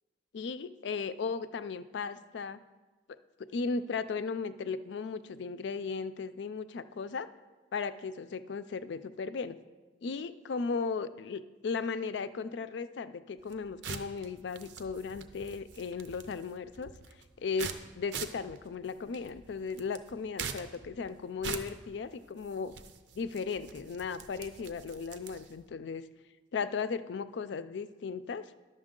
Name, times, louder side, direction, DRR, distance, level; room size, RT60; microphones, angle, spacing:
voice 1, 0.3-2.6 3.4-7.3 7.7-9.6 10.0-16.9 17.4-22.7 23.2-26.1 26.5-28.5, left 5 dB, 75° left, 14 dB, 0.4 m, -36 dB
sound 1, 13.4-25.7, right 6 dB, 75° right, 0.6 m, -44 dB
11.5 x 6.8 x 3.7 m, 1.3 s
head